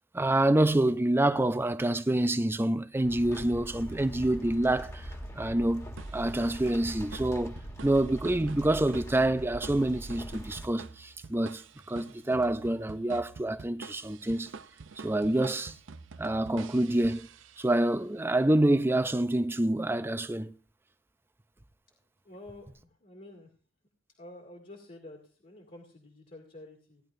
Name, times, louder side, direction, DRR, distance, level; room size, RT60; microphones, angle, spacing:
voice 1, 0.1-5.9 6.1-7.6 7.8-14.5 15.0-15.8 16.2-17.3 17.6-20.5, right 1 dB, 10° right, 0.5 m, -27 dB
sound 1, 3.0-10.7, equal, 15° left, 1.6 m, -42 dB
sound 2, 6.0-17.9, right 4 dB, 75° right, 0.6 m, -48 dB
voice 2, 22.2-23.5 24.2-27.0, left 1 dB, 45° left, 2.3 m, -49 dB
17.0 x 11.0 x 2.6 m
head